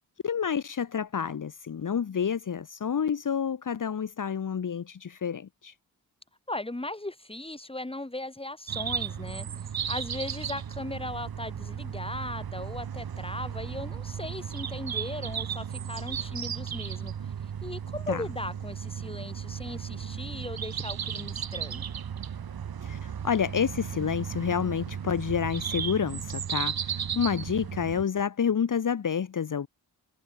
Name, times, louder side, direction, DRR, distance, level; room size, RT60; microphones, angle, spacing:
voice 1, 0.2-5.7 18.1-18.2 22.8-29.7, left 7 dB, 50° left, 1.3 m, -29 dB
voice 2, 6.5-17.1 17.6-21.8, left 2 dB, 15° left, 3.0 m, -38 dB
sound 1, 8.7-28.0, right 8 dB, 65° right, 1.9 m, -35 dB
supercardioid pair, 40°, 40 cm